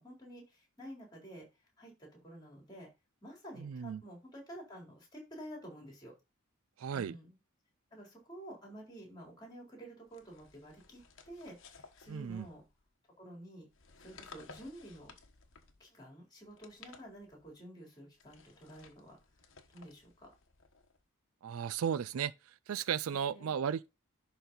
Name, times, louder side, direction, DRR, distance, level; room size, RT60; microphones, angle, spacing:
voice 1, 0.0-1.5 1.8-2.9 3.2-6.1 6.9-7.4 7.9-12.6 13.2-13.7 14.0-15.1 15.8-19.2 19.7-20.3 23.1-23.5, right 1 dB, 20° left, 3.7 m, -50 dB
voice 2, 3.6-4.0 6.8-7.2 12.1-12.5 21.4-22.3 22.7-23.9, right 8 dB, 70° right, 0.4 m, -35 dB
sound 1, 10.1-12.9 13.7-15.9 16.4-17.6 18.2-21.0, left 4 dB, 60° left, 1.2 m, -57 dB
11.0 x 4.1 x 4.0 m
head